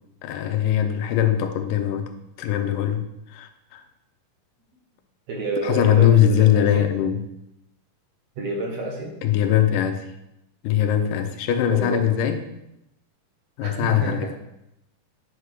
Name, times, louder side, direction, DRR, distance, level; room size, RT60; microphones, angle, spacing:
voice 1, 0.2-2.1 2.4-3.1 3.3-3.8 5.6-7.2 9.2-10.1 10.6-12.4 13.6-14.4, left 10 dB, 85° left, 7 dB, 2.3 m, -21 dB
voice 2, 5.3-6.9 8.4-9.1 11.7-12.0 13.6-14.2, right 2 dB, 65° right, -1 dB, 2.1 m, -29 dB
9.5 x 5.7 x 3.3 m, 0.84 s
omnidirectional pair, 3.7 m